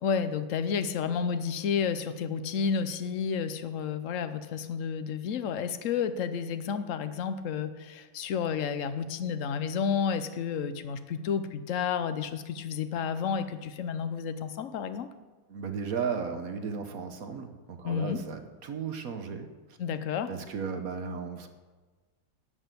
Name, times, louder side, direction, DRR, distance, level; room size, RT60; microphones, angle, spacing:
voice 1, 0.0-15.1 17.8-18.2 19.8-20.3, left 6 dB, 60° left, 11 dB, 0.8 m, -31 dB
voice 2, 15.5-19.5 20.3-21.5, right 6 dB, 55° right, 7 dB, 1.2 m, -35 dB
11.0 x 6.2 x 8.2 m, 1.3 s
omnidirectional pair, 2.0 m